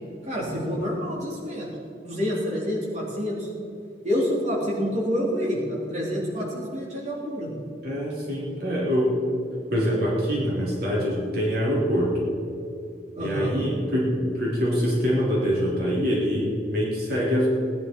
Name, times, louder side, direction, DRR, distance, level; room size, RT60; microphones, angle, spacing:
voice 1, 0.2-1.7 2.0-3.5 4.0-7.5 13.2-13.5, equal, 40° right, -6 dB, 3.8 m, -27 dB
voice 2, 7.8-9.3 9.7-12.2 13.2-17.5, equal, 55° right, -5 dB, 3.6 m, -24 dB
19.5 x 11.0 x 4.7 m, 2.6 s
head